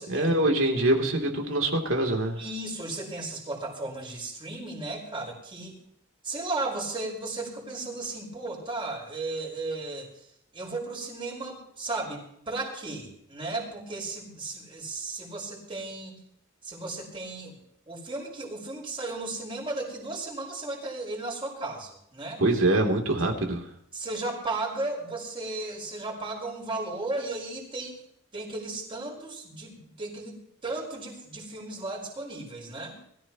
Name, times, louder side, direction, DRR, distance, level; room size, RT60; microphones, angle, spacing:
voice 1, 0.1-2.4 22.4-23.7, right 1 dB, 70° right, 2 dB, 3.2 m, -24 dB
voice 2, 2.4-5.8 6.2-10.1 10.5-16.2 16.6-17.6 17.9-22.4 23.9-28.0 28.3-33.0, right 2 dB, 25° right, -2 dB, 5.6 m, -35 dB
22.5 x 14.5 x 3.1 m, 0.68 s
head